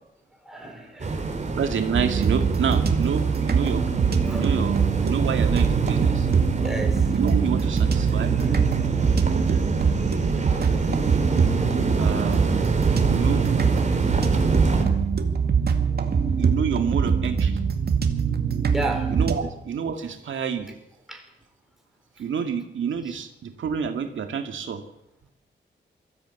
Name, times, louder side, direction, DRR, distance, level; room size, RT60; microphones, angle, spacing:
voice 1, 0.4-1.4 3.7-3.8 4.2-4.5 6.6-7.2 8.3-8.5 18.7-19.5 21.1-21.3 23.0-23.1, right 2 dB, ahead, 2 dB, 4.7 m, -34 dB
sound 1, 1.0-14.8, right 3 dB, 35° right, 3.3 m, -26 dB
voice 2, 1.6-3.9 4.3-6.3 7.1-8.3 12.0-12.6 13.0-13.6 16.4-17.6 19.1-20.7 22.2-24.8, right 7 dB, 85° right, 5 dB, 2.0 m, -28 dB
sound 2, 1.9-19.4, right 6 dB, 55° right, 2.2 m, -23 dB
22.0 x 14.0 x 8.2 m, 0.88 s
wide cardioid pair, 110°, 19 cm